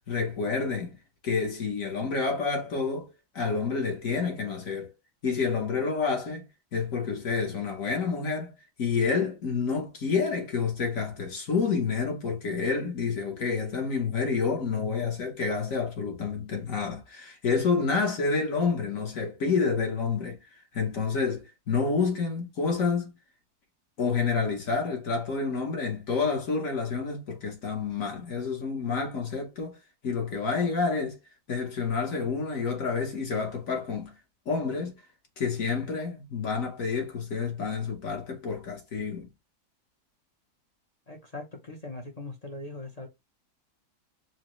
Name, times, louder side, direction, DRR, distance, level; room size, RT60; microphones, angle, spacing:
voice 1, 0.1-1.0 1.2-3.1 3.3-4.9 5.2-6.4 6.7-8.5 8.8-20.4 20.7-23.1 24.0-29.8 30.0-31.2 31.5-34.1 34.5-34.9 35.4-39.3, left 5 dB, 60° left, 1.4 m, -29 dB
voice 2, 41.1-43.1, left 2 dB, 35° left, 0.6 m, -40 dB
4.9 x 2.1 x 3.0 m
omnidirectional pair, 1.6 m